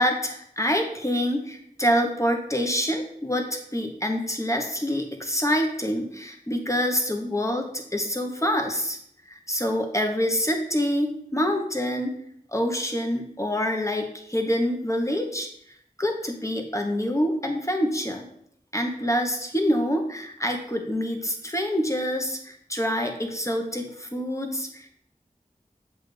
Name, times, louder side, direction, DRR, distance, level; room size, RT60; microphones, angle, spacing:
voice 1, 0.0-9.0 9.3-12.1 12.5-15.5 16.0-18.3 18.7-24.9, equal, 20° left, 3 dB, 1.0 m, -26 dB
7.8 x 2.6 x 5.2 m, 0.69 s
wide cardioid pair, 40°, 15 cm